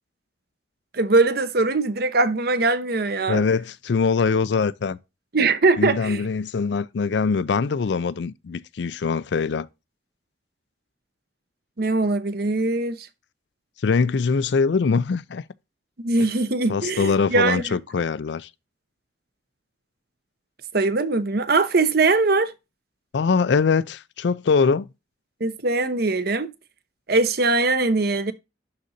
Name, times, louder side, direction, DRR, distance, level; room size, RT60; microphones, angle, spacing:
voice 1, 0.9-3.4 5.3-6.2 11.8-13.1 16.0-17.8 20.7-22.5 25.4-26.5 27.1-28.3, right 3 dB, 55° right, 0.8 m, -21 dB
voice 2, 3.3-5.0 5.8-9.7 13.8-15.4 16.7-18.5 23.1-24.9, left 5 dB, 70° left, 0.4 m, -22 dB
11.5 x 4.0 x 2.6 m
head